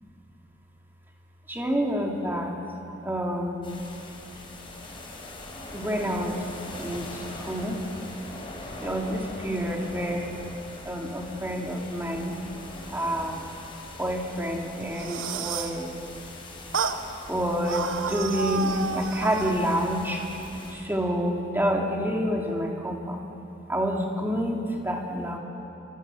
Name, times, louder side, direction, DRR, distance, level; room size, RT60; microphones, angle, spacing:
voice 1, 1.5-2.6 3.0-3.8 5.7-6.4 6.7-7.8 8.8-10.3 10.8-12.4 12.9-13.4 14.0-15.9 17.3-20.3 20.7-23.2 23.7-25.4, equal, 10° right, 0 dB, 3.1 m, -28 dB
sound 1, 3.6-20.7, left 1 dB, 25° left, 5.1 m, -42 dB
sound 2, 14.8-15.8 16.7-17.0 17.6-19.6, right 5 dB, 90° right, 1.5 m, -31 dB
30.0 x 25.0 x 7.2 m, 2.9 s
head